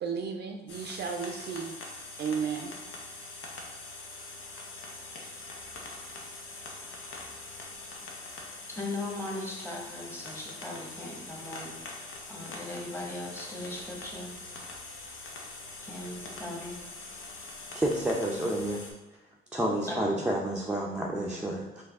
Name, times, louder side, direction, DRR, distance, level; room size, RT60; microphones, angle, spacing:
voice 1, 0.0-1.8 2.2-2.7, right 6 dB, 55° right, 4 dB, 0.5 m, -33 dB
sound 1, 0.7-18.9, left 3 dB, 80° left, 0.9 m, -43 dB
voice 2, 8.7-14.3 15.8-16.8 19.9-20.2 21.3-21.6, left 2 dB, 10° left, -2 dB, 1.2 m, -39 dB
voice 3, 17.7-18.8 19.5-21.8, right 1 dB, 5° right, -3 dB, 0.6 m, -30 dB
4.7 x 2.6 x 3.5 m, 1.0 s
cardioid pair, 90°, 20 cm